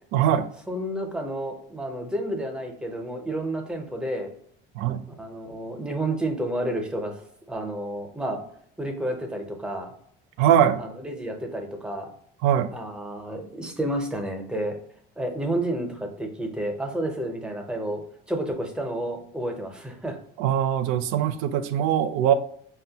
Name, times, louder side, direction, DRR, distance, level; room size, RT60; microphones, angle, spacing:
voice 1, 0.1-0.5 4.8-5.0 10.4-10.8 12.4-12.7 20.4-22.3, right 10 dB, 90° right, 12 dB, 0.5 m, -21 dB
voice 2, 0.7-4.3 5.1-7.1 7.5-8.4 8.8-9.9 10.8-12.1 12.7-14.8 15.2-18.0 18.3-20.2, right 1 dB, 5° right, 3 dB, 0.5 m, -30 dB
5.5 x 2.2 x 2.7 m, 0.64 s
cardioid pair, 165°, 21 cm